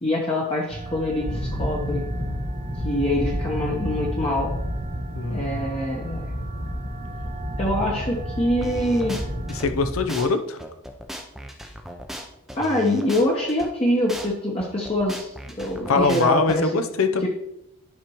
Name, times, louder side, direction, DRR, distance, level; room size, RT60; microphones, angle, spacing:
voice 1, 0.0-2.0 2.8-4.5 5.3-6.3 7.6-9.2 12.5-16.7 17.2-17.3, left 1 dB, 30° left, -2 dB, 0.9 m, -24 dB
sound 1, 0.7-9.7, right 2 dB, 35° right, 0.8 m, -36 dB
sound 2, 1.3-10.1, equal, 50° left, 2.1 m, -31 dB
voice 2, 5.1-5.7 9.5-10.6 15.9-17.3, left 4 dB, 85° left, 8 dB, 0.7 m, -23 dB
sound 3, 8.6-9.7 10.1-10.3 10.6-13.7 14.1-14.3 14.6-16.6, equal, ahead, 0.5 m, -37 dB
10.5 x 5.1 x 3.0 m, 0.83 s
head